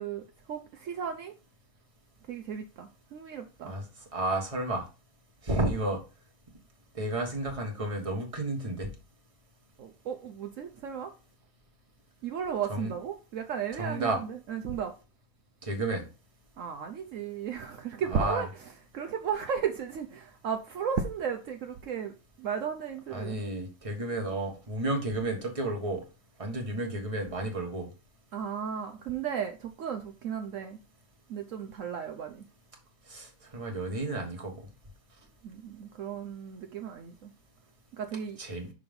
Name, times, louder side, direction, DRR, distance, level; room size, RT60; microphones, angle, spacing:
voice 1, 0.0-1.3 2.3-3.7 9.8-11.1 12.2-14.9 16.6-18.5 18.9-22.1 22.4-23.4 28.3-30.8 31.3-32.4 35.4-37.3 37.9-38.4, right 7 dB, 70° right, 1.0 m, -34 dB
voice 2, 4.1-4.8 5.4-6.0 6.9-8.9 12.7-12.9 13.8-14.2 15.6-16.1 18.1-18.5 23.1-26.0 26.4-27.9 33.1-34.7 38.4-38.7, right 2 dB, 25° right, 1.5 m, -32 dB
6.1 x 3.9 x 5.2 m
omnidirectional pair, 1.5 m